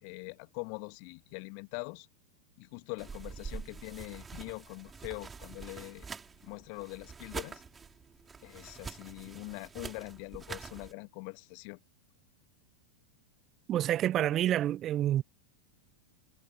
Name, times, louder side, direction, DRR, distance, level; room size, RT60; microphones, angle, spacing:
voice 1, 0.0-2.1 2.6-6.1 6.4-7.6 8.4-11.8, left 40 dB or more, 45° left, 2.2 m, -43 dB
sound 1, 3.0-10.9, right 5 dB, 15° right, 6.2 m, -45 dB
voice 2, 13.7-15.2, right 12 dB, 30° right, 0.9 m, -28 dB
figure-of-eight pair, 90°, 0 cm